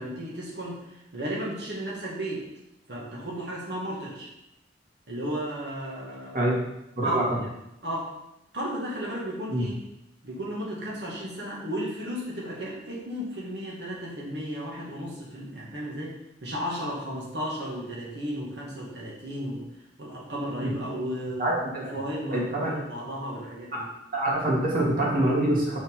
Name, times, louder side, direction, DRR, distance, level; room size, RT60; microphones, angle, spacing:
voice 1, 0.0-2.4 2.9-4.3 5.1-6.5 7.0-7.3 7.8-8.1 8.5-9.8 10.2-19.6 20.0-23.9, equal, 70° right, -4 dB, 2.1 m, -34 dB
voice 2, 21.4-21.9 22.3-22.7 23.7-23.8 24.1-25.8, right 1 dB, 50° right, -5 dB, 2.3 m, -25 dB
6.1 x 6.1 x 3.8 m, 0.86 s
head